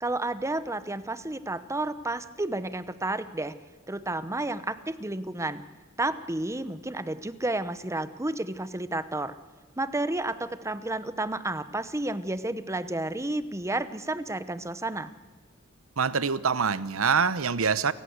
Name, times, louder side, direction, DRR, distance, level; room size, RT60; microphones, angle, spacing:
voice 1, 0.0-3.5 3.9-5.6 6.0-9.4 9.8-15.1, right 2 dB, 15° right, 13 dB, 0.9 m, -31 dB
voice 2, 16.0-17.9, right 6 dB, 80° right, 16 dB, 0.9 m, -25 dB
28.5 x 16.0 x 8.1 m, 1.3 s
head